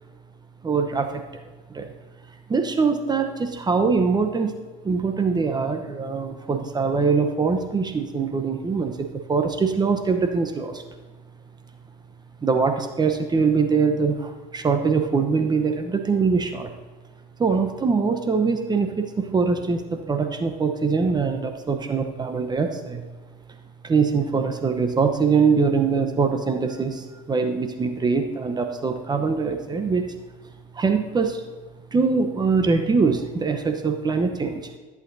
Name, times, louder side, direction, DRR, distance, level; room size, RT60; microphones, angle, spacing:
voice 1, 0.6-1.2 1.7-1.9 2.5-4.5 4.8-10.8 12.4-16.7 17.4-23.1 23.8-30.0 30.7-31.4 31.9-34.7, right 5 dB, 25° right, 6 dB, 0.9 m, -23 dB
14.0 x 8.3 x 2.7 m, 1.3 s
supercardioid pair, 90°, 17 cm